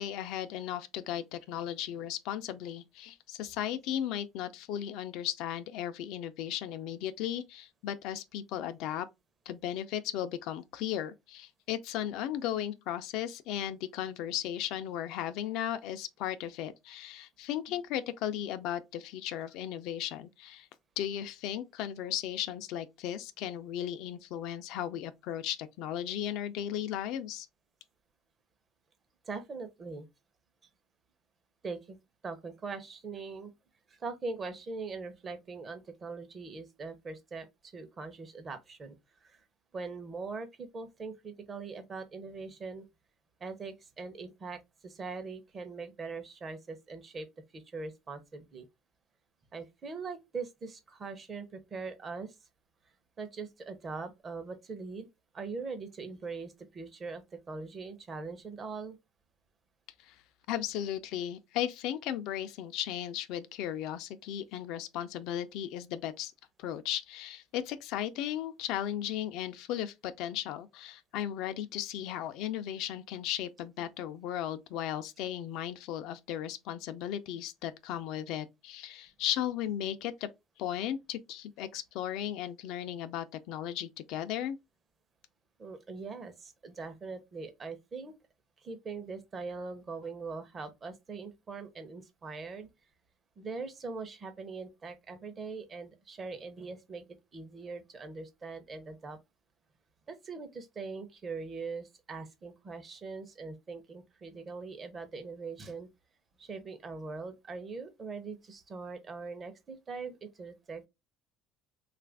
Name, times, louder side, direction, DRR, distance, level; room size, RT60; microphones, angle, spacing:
voice 1, 0.0-9.1 9.5-20.7 21.0-27.5 60.0-60.2 60.5-66.3 66.6-80.3 80.6-84.6, left 11 dB, 70° left, 0.4 m, -36 dB
voice 2, 29.3-30.0 31.6-32.0 32.2-33.5 34.0-37.5 37.7-38.9 39.3-39.4 39.7-42.8 43.4-47.3 47.5-48.7 49.5-52.3 53.2-55.1 55.3-57.2 57.5-59.0 85.6-88.1 88.6-92.7 93.4-97.0 97.3-99.2 100.1-105.9 106.4-110.9, right 4 dB, 30° right, 0.7 m, -41 dB
3.1 x 2.4 x 3.3 m
cardioid pair, 125°, 0 cm